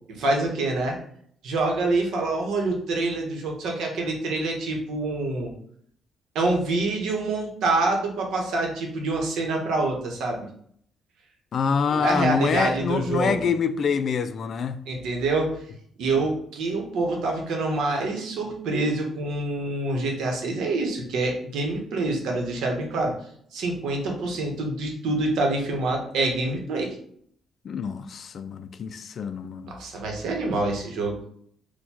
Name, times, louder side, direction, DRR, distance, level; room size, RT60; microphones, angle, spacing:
voice 1, 0.1-1.0 1.4-5.5 6.3-10.5 11.9-13.3 14.9-15.6 16.0-23.1 23.5-27.0 29.7-31.2, right 2 dB, 80° right, 0.9 m, -26 dB
voice 2, 11.5-14.8 27.6-29.7, left 6 dB, 55° left, 0.3 m, -26 dB
4.4 x 2.2 x 2.8 m
cardioid pair, 90°, 0 cm